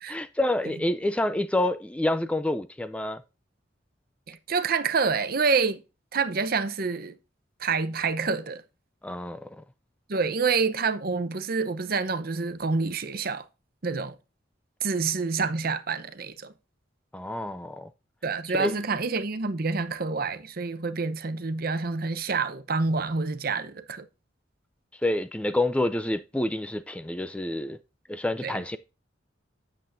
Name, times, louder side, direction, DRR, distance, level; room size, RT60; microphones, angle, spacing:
voice 1, 0.1-3.2 9.0-9.4 17.1-17.9 18.5-18.7 25.0-27.8 28.1-28.8, left 1 dB, 5° left, 0.4 m, -28 dB
voice 2, 4.3-5.8 6.1-7.2 7.6-8.6 10.1-13.4 13.8-14.1 14.8-16.5 18.2-24.0 28.4-28.6, right 4 dB, 50° right, 0.8 m, -27 dB
8.8 x 7.4 x 2.5 m
head